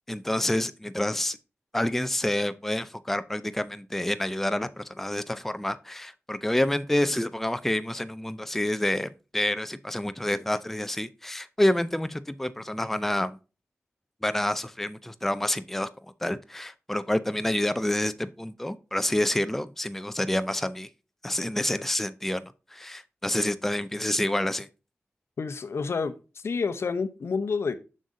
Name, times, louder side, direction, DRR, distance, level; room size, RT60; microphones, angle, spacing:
voice 1, 0.1-1.4 1.7-13.4 14.2-15.9 16.2-20.9 21.2-24.7, left 1 dB, 5° left, 0.5 m, -28 dB
voice 2, 25.4-27.8, left 5 dB, 70° left, 0.8 m, -29 dB
7.5 x 6.4 x 2.6 m
wide cardioid pair, 90°, 5 cm